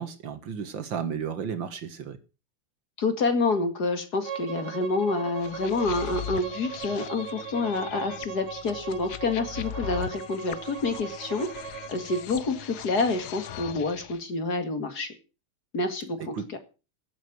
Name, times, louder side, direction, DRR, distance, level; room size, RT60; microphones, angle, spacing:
voice 1, 0.0-2.2 16.3-16.5, right 7 dB, 60° right, 2.0 m, -33 dB
voice 2, 3.0-15.1 15.7-16.3, left 3 dB, 45° left, 2.5 m, -28 dB
Bowed string instrument, 4.2-12.3, right 8 dB, 85° right, 2.7 m, -39 dB
sound 1, 5.4-14.2, left 10 dB, 75° left, 1.7 m, -40 dB
16.5 x 8.6 x 6.1 m
omnidirectional pair, 2.4 m